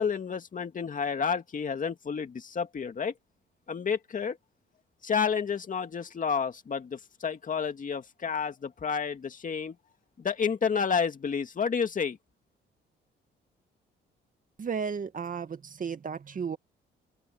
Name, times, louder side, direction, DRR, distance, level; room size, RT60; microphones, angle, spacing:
voice 1, 0.0-3.1 3.7-4.4 5.0-9.8 10.2-12.2, left 6 dB, 40° left, 2.3 m, -30 dB
voice 2, 14.6-16.6, right 6 dB, 45° right, 2.0 m, -34 dB
open air
cardioid pair, 90°, 20 cm